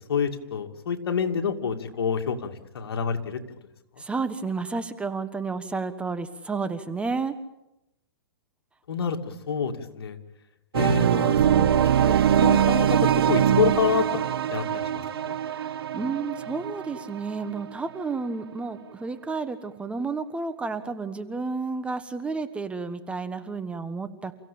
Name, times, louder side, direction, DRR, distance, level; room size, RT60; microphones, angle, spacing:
voice 1, 0.1-3.4 8.9-9.2 9.5-10.2 10.7-11.7 12.0-12.1 12.4-14.1 14.5-15.4, left 6 dB, 80° left, 4 dB, 2.7 m, -27 dB
voice 2, 4.0-7.3 15.4-24.3, right 4 dB, 10° right, 10 dB, 1.3 m, -31 dB
sound 1, 10.7-17.6, right 9 dB, 75° right, 1.7 m, -22 dB
29.0 x 16.0 x 8.7 m, 0.91 s
hypercardioid pair, 140°, 13 cm